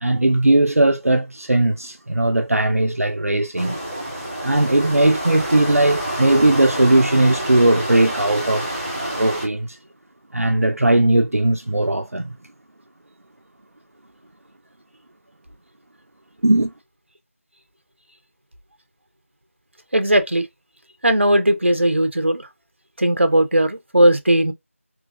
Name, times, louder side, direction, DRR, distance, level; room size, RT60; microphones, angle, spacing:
voice 1, 0.0-3.8 4.4-8.7 9.0-9.8 10.3-12.3 16.4-16.7, right 2 dB, 80° right, 0.5 m, -18 dB
sound 1, 3.6-9.5, right 1 dB, 20° right, 1.4 m, -28 dB
voice 2, 19.9-20.4 21.0-22.5 23.0-24.5, right 1 dB, 55° right, 0.8 m, -17 dB
3.8 x 3.1 x 2.5 m
figure-of-eight pair, 175°, 8 cm